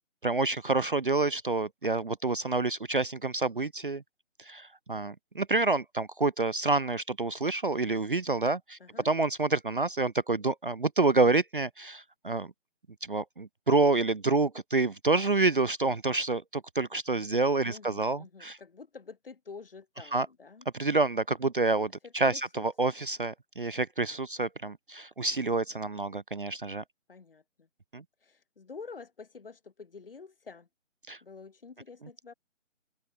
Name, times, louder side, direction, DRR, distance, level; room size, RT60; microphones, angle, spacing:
voice 1, 0.2-4.0 4.4-8.8 9.0-12.5 13.0-18.6 20.1-20.3 20.7-26.8 27.9-28.0 31.1-31.2, right 3 dB, 45° right, 0.5 m, -28 dB
voice 2, 17.6-20.7 22.0-22.6 25.7-25.8 27.1-27.7 28.2-30.7 31.2-32.3, left 5 dB, 45° left, 2.2 m, -48 dB
figure-of-eight pair, 150°, 38 cm